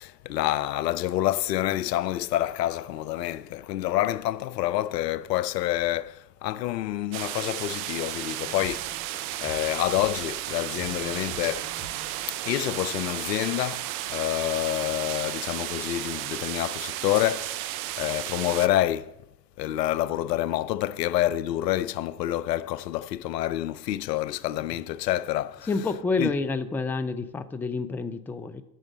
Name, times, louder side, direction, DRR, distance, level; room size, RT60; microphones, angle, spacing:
voice 1, 0.0-8.9 9.4-11.7 12.4-19.1 19.6-25.7 26.2-26.3, left 14 dB, 80° left, 0.5 m, -28 dB
sound 1, 7.1-18.7, right 15 dB, 60° right, 0.7 m, -33 dB
sound 2, 8.4-12.2, right 1 dB, 75° right, 2.8 m, -46 dB
voice 2, 25.7-28.6, left 3 dB, 5° left, 0.4 m, -28 dB
8.9 x 6.2 x 7.3 m
figure-of-eight pair, 70°, 49 cm